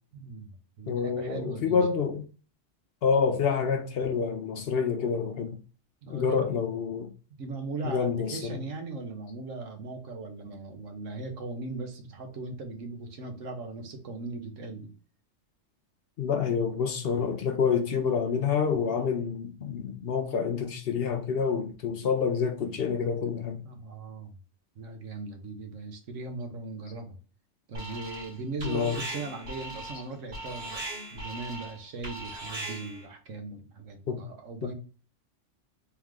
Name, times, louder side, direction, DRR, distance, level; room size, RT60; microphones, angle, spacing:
voice 1, 0.1-0.5 0.8-1.9 6.0-6.4 7.4-14.9 23.6-24.3 24.7-27.2 27.7-30.8 31.1-34.7, right 3 dB, 80° right, 1.3 m, -38 dB
voice 2, 0.9-2.3 3.0-5.6 6.1-7.1 7.8-8.6 16.2-23.6 28.6-29.0 34.1-34.2 34.6-34.7, left 6 dB, 60° left, 0.7 m, -28 dB
Alarm, 27.7-28.3 28.6-33.1, right 1 dB, 60° right, 1.9 m, -39 dB
3.5 x 3.1 x 3.6 m
omnidirectional pair, 1.3 m